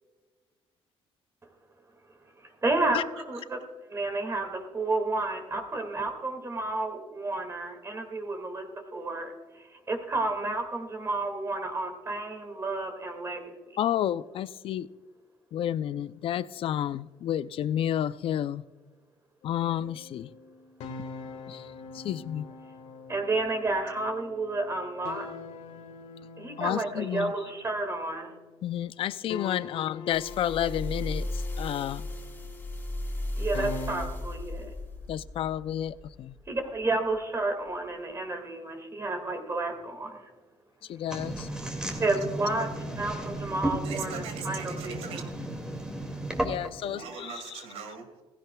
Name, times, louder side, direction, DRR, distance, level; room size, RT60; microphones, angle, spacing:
voice 1, 2.4-3.6 3.9-8.6 8.9-9.3 9.9-13.5 23.1-25.3 26.4-28.3 33.4-34.7 36.5-40.3 42.0-42.7 43.0-44.9, right 2 dB, 25° right, 2.1 m, -31 dB
voice 2, 13.8-14.9 15.5-18.6 19.4-20.3 21.5-21.7 21.9-22.5 26.6-27.3 28.6-32.0 35.1-36.4 40.9-41.5 46.4-47.6, left 11 dB, 60° left, 0.5 m, -31 dB
sound 1, 19.4-28.7 29.3-34.1, left 4 dB, 80° left, 1.6 m, -44 dB
sound 2, 30.1-36.6 37.1-37.2, left 1 dB, 15° left, 3.1 m, -36 dB
sound 3, 41.1-46.8, right 1 dB, 5° right, 2.2 m, -34 dB
voice 3, 43.8-45.4 46.8-48.2, right 6 dB, 90° right, 2.3 m, -41 dB
16.5 x 16.0 x 2.3 m
cardioid pair, 105°, 10 cm